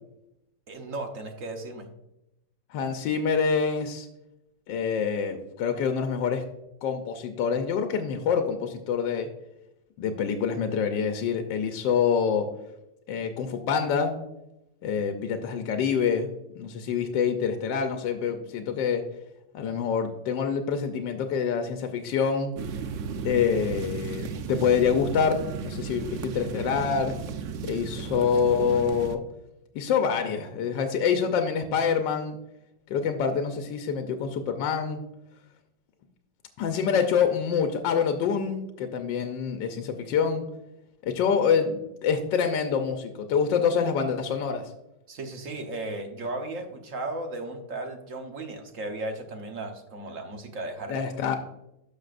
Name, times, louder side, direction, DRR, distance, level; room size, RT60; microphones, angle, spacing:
voice 1, 0.7-1.9 45.1-51.0, right 2 dB, 50° right, 5 dB, 1.3 m, -35 dB
voice 2, 2.7-4.1 4.7-6.4 6.8-9.3 10.0-12.5 13.1-14.1 14.8-19.0 19.5-22.5 23.2-27.1 27.6-29.2 29.7-32.4 32.9-35.0 36.6-40.4 41.0-44.7 50.9-51.4, left 6 dB, 85° left, 6 dB, 1.4 m, -26 dB
sound 1, 22.6-29.2, right 5 dB, 70° right, 0.7 m, -35 dB
12.0 x 6.5 x 2.5 m, 0.87 s
omnidirectional pair, 2.0 m